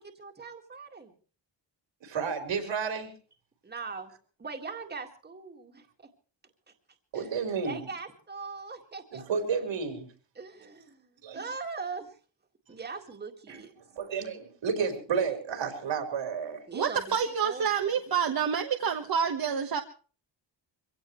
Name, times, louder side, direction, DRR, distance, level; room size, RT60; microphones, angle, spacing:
voice 1, 0.0-1.1 3.6-4.1 4.4-5.9 7.1-7.4 7.6-9.2 10.3-12.2 12.7-13.7 16.7-17.7, right 4 dB, 20° right, 3 dB, 2.0 m, -41 dB
voice 2, 2.0-3.1 7.1-7.8 9.1-10.1 11.2-11.4 13.5-13.6 13.9-16.6 17.8-17.9, right 6 dB, 85° right, 6 dB, 4.7 m, -31 dB
voice 3, 16.7-19.8, right 7 dB, 55° right, 4 dB, 1.4 m, -28 dB
24.5 x 17.0 x 3.2 m, 0.40 s
wide cardioid pair, 175°, 44 cm